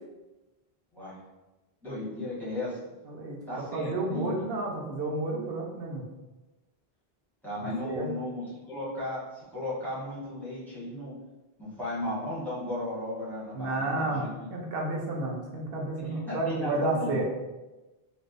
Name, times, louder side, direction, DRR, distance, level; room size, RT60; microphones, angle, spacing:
voice 1, 1.8-2.8 3.5-4.5 7.4-11.1 11.6-14.5 16.0-17.2, left 1 dB, ahead, -11 dB, 1.3 m, -35 dB
voice 2, 3.1-6.0 7.6-8.1 13.5-17.2, right 2 dB, 65° right, -1 dB, 0.8 m, -31 dB
3.3 x 2.5 x 2.5 m, 1.1 s
omnidirectional pair, 1.1 m